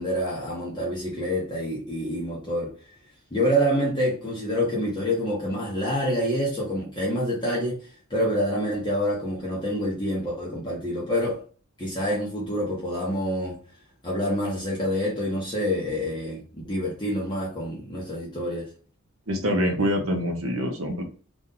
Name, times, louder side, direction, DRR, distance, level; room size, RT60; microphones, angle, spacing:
voice 1, 0.0-2.7 3.3-7.8 8.1-11.4 11.8-13.6 14.0-18.7, equal, 20° left, 0.9 m, -27 dB
voice 2, 19.3-21.0, equal, 65° right, 1.0 m, -25 dB
3.0 x 2.6 x 3.8 m
head